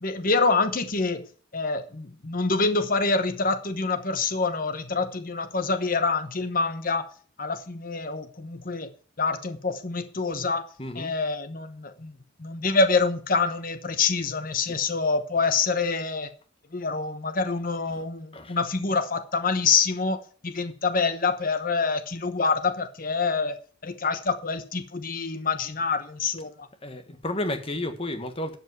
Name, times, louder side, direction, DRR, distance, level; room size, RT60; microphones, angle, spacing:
voice 1, 0.0-1.3 1.5-7.1 7.4-8.9 9.2-10.7 10.9-16.3 16.7-23.6 23.8-26.7, left 4 dB, 45° left, 1.0 m, -26 dB
voice 2, 10.8-11.1 14.6-14.7 17.9-18.0 18.3-18.6 26.8-28.6, left 1 dB, 30° left, 1.4 m, -32 dB
12.0 x 5.4 x 8.0 m
head